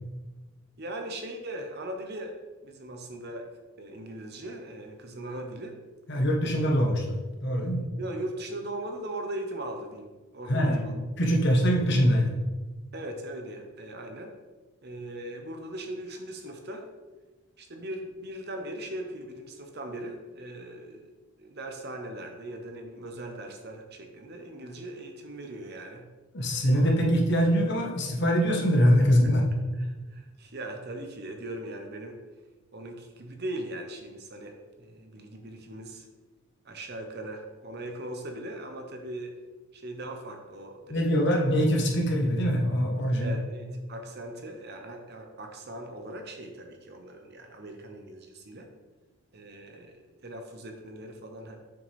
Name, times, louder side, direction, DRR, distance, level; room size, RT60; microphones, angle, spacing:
voice 1, 0.8-2.3 2.6-3.5 3.8-5.8 6.4-6.7 8.0-11.0 12.9-14.3 14.8-16.9 17.6-21.1 21.4-26.1 29.2-29.3 29.8-32.2 32.7-36.1 36.6-39.3 39.7-41.4 43.2-48.7 49.3-49.9 50.2-51.6, right 1 dB, 45° right, 4 dB, 0.9 m, -39 dB
voice 2, 6.1-7.8 10.5-12.3 26.3-29.4 40.9-43.4, equal, 50° left, 0 dB, 1.2 m, -23 dB
7.0 x 6.4 x 3.5 m, 1.2 s
head